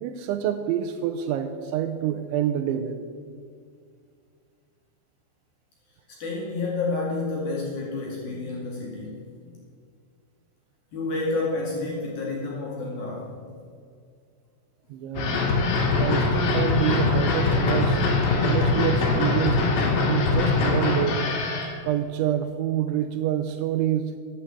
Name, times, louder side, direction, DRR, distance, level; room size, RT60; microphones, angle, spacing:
voice 1, 0.0-3.0 14.9-15.4 16.0-18.0 18.4-19.7 20.1-21.2 21.8-24.2, right 10 dB, 90° right, 8 dB, 2.6 m, -27 dB
voice 2, 6.2-9.3 10.9-13.3, left 3 dB, 55° left, -3 dB, 3.3 m, -29 dB
sound 1, 15.2-21.7, left 3 dB, 70° left, 4.7 m, -22 dB
14.0 x 8.3 x 7.6 m, 2.2 s
omnidirectional pair, 6.0 m